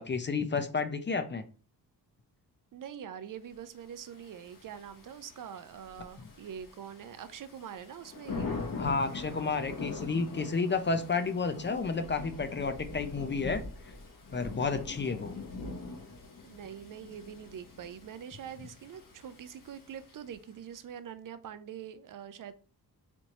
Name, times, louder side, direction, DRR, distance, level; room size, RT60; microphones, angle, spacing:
voice 1, 0.0-1.4 8.7-13.6 14.3-15.3, left 4 dB, 30° left, 0.5 m, -31 dB
voice 2, 2.7-8.7 16.4-22.5, right 8 dB, 55° right, 0.5 m, -44 dB
Thunder / Rain, 3.9-20.5, left 3 dB, 55° left, 1.2 m, -43 dB
4.3 x 2.7 x 2.9 m
cardioid pair, 80°, 40 cm